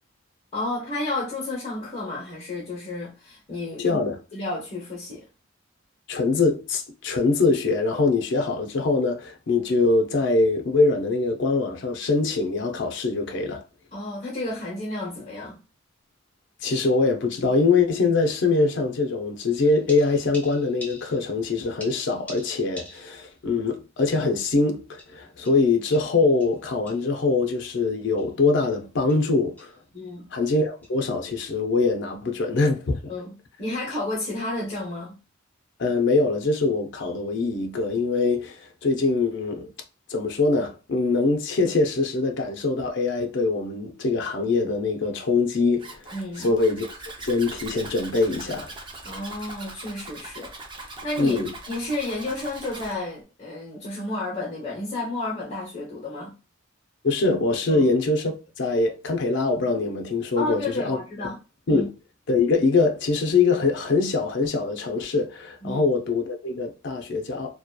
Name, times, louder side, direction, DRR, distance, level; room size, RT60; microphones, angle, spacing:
voice 1, 0.5-4.0 4.3-5.2 13.9-15.6 29.9-30.2 33.1-35.2 46.1-46.5 49.0-56.3 57.7-57.9 60.4-61.4 61.7-61.9 65.6-65.8, left 2 dB, 35° left, 0.8 m, -32 dB
voice 2, 3.8-4.2 6.1-13.6 16.6-29.7 30.3-33.1 35.8-39.7 40.1-46.0 46.4-46.9 47.2-48.7 51.2-51.5 57.0-61.0 61.7-61.9 62.3-67.6, left 3 dB, 60° left, 0.5 m, -23 dB
sound 1, 19.5-21.5 21.8-23.4 23.7-23.8 25.0-27.2 27.7-27.9 28.2-28.3 28.6-28.8 29.1-29.3 29.6-29.8 30.8-31.0, left 1 dB, 10° left, 0.8 m, -46 dB
Zipper (clothing), 45.8-52.9, right 2 dB, 25° right, 0.5 m, -40 dB
2.7 x 2.2 x 2.2 m
head